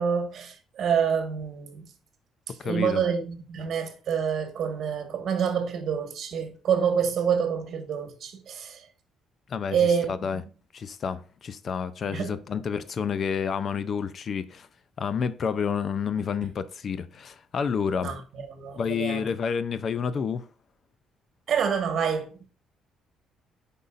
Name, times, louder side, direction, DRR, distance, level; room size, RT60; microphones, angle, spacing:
voice 1, 0.0-1.8 2.6-8.8 9.7-10.1 12.1-12.3 18.0-18.2 18.5-19.2 21.5-22.3, right 7 dB, 55° right, 1.6 m, -27 dB
voice 2, 2.6-3.0 9.5-10.4 10.7-14.7 15.0-18.2 18.8-20.5, left 6 dB, 45° left, 0.5 m, -29 dB
8.0 x 5.4 x 2.5 m
cardioid pair, 125°, 0 cm